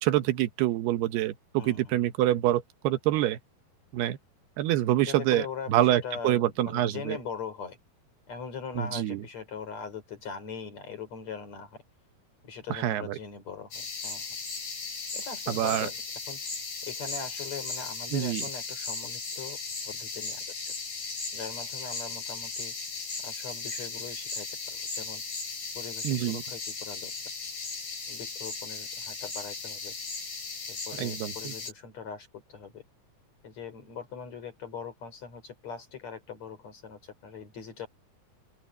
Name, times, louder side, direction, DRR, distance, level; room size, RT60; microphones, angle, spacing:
voice 1, 0.0-3.4 3.9-4.2 4.6-7.2 8.8-9.2 12.7-13.2 15.5-15.9 18.1-18.4 26.0-26.4 31.0-31.5, right 13 dB, 80° right, 3.1 m, -26 dB
voice 2, 1.6-2.1 5.0-7.8 8.3-11.8 12.4-14.3 15.1-16.0 16.3-16.4 16.8-19.6 19.8-20.7 21.3-22.7 23.2-25.2 25.7-27.1 28.1-29.9 30.7-32.8 33.4-37.9, left 6 dB, 45° left, 5.1 m, -41 dB
sound 1, 13.7-31.7, left 4 dB, 60° left, 9.9 m, -37 dB
open air
omnidirectional pair, 4.6 m